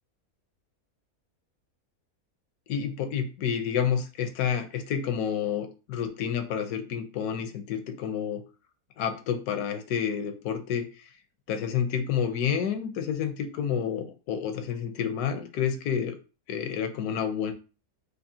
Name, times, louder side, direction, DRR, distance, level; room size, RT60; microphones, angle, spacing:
voice 1, 2.7-8.4 9.0-10.9 11.5-16.2 16.5-17.5, left 8 dB, 85° left, 7 dB, 1.2 m, -29 dB
4.7 x 2.6 x 2.7 m, 0.33 s
omnidirectional pair, 1.6 m